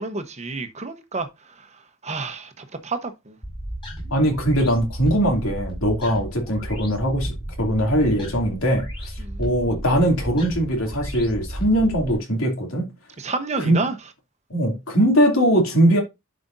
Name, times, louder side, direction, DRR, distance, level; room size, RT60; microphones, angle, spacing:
voice 1, 0.0-3.4 9.2-9.5 13.2-14.0, right 3 dB, 35° right, 1.0 m, -30 dB
sound 1, 3.4-12.2, right 1 dB, 25° left, 5.0 m, -33 dB
voice 2, 4.1-12.9 13.6-13.8 14.5-16.0, equal, 85° left, 2.7 m, -21 dB
11.0 x 5.1 x 2.6 m
head